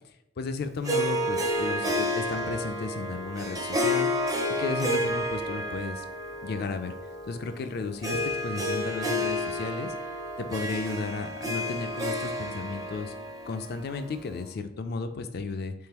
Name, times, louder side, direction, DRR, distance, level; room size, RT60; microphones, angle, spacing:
voice 1, 0.4-4.1 4.6-6.1 6.4-6.9 7.3-9.9 10.4-13.1 13.5-15.7, left 4 dB, 55° left, 9 dB, 0.4 m, -34 dB
Harp, 0.8-14.5, left 1 dB, 20° right, 0.5 m, -31 dB
3.7 x 3.2 x 2.9 m, 0.79 s
head